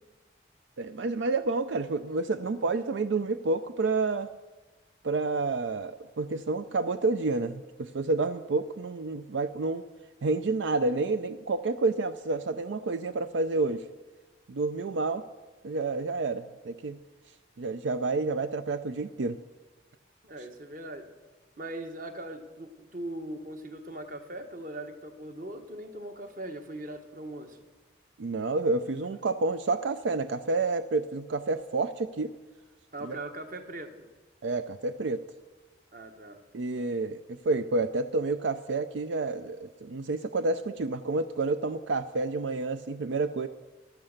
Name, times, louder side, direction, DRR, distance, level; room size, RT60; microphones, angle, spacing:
voice 1, 0.8-4.3 5.0-9.8 10.2-13.8 14.5-15.2 15.6-17.0 17.6-19.4 28.2-32.3 33.0-33.2 34.4-35.2 36.5-43.5, right 3 dB, 80° right, 11 dB, 0.5 m, -29 dB
voice 2, 20.2-21.1 21.6-27.6 32.9-34.1 35.9-36.4, right 1 dB, 45° right, 6 dB, 1.3 m, -40 dB
14.5 x 12.0 x 6.6 m, 1.2 s
head